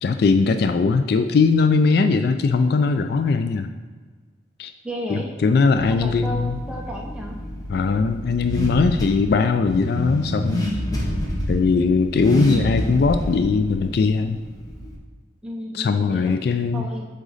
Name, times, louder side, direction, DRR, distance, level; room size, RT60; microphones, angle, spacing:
voice 1, 0.0-3.7 4.6-4.7 5.1-6.6 7.7-10.7 11.5-14.4 15.7-16.9, left 4 dB, 60° left, 8 dB, 0.3 m, -20 dB
voice 2, 4.8-5.3 5.9-7.4 15.4-16.4 16.7-17.1, equal, 5° right, -2 dB, 0.7 m, -32 dB
Car / Accelerating revving vroom, 5.8-15.0, left 1 dB, 20° left, 1.0 m, -29 dB
8.0 x 3.9 x 4.0 m, 1.4 s
head